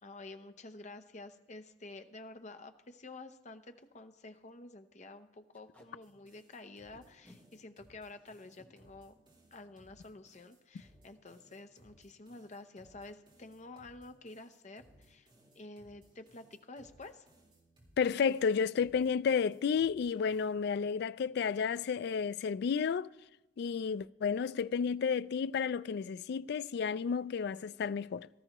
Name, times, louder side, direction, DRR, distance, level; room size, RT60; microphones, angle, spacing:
voice 1, 0.0-9.1 9.5-15.3 15.5-17.2, left 2 dB, 40° left, 0.8 m, -50 dB
Packing tape duct tape, 2.1-2.2 2.5-2.6 2.8-3.0 3.5-3.6 3.8-4.0 4.3-4.5 5.5-5.9 6.9-7.4 8.4-8.7 10.2-10.4 10.8-11.0 11.2-11.6, left 1 dB, 10° left, 1.5 m, -61 dB
sound 1, 6.0-20.5, right 1 dB, 25° right, 4.2 m, -64 dB
voice 2, 18.0-23.1 23.6-28.3, left 6 dB, 60° left, 0.3 m, -32 dB
18.0 x 13.5 x 3.0 m
head